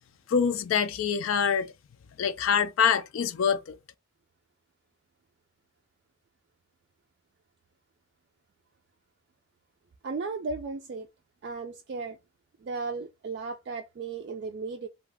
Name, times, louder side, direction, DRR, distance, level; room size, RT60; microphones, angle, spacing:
voice 1, 0.3-1.7 2.2-3.8, left 7 dB, 75° left, 0.4 m, -25 dB
voice 2, 10.0-11.1 11.4-12.2 12.6-14.9, right 4 dB, 55° right, 0.3 m, -35 dB
2.4 x 2.2 x 3.3 m
head